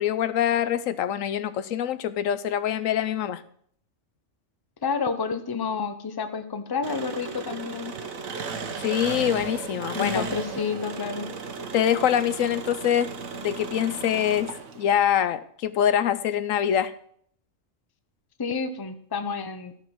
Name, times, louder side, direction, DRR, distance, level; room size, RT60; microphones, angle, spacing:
voice 1, 0.0-3.4 8.8-10.2 11.7-13.1 13.4-14.5 14.8-16.9, left 10 dB, 80° left, 14 dB, 1.0 m, -24 dB
voice 2, 4.8-7.9 9.9-11.3 18.4-19.7, left 5 dB, 20° left, 9 dB, 0.7 m, -30 dB
Engine, 6.8-15.0, right 5 dB, 85° right, 1.5 m, -35 dB
13.5 x 5.7 x 6.1 m, 0.62 s
omnidirectional pair, 1.4 m